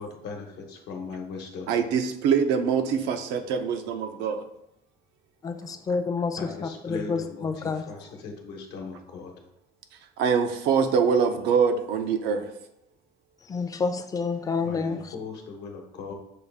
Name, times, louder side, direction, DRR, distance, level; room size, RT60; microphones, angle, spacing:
voice 1, 0.0-1.7 6.4-9.3 14.6-16.1, left 4 dB, 80° left, 1 dB, 1.0 m, -39 dB
voice 2, 1.7-4.4 10.2-12.5, right 6 dB, 90° right, 7 dB, 0.5 m, -24 dB
voice 3, 5.4-7.8 13.5-15.1, left 4 dB, 20° left, 7 dB, 0.4 m, -29 dB
6.5 x 2.4 x 3.4 m, 0.80 s
cardioid pair, 110°, 17 cm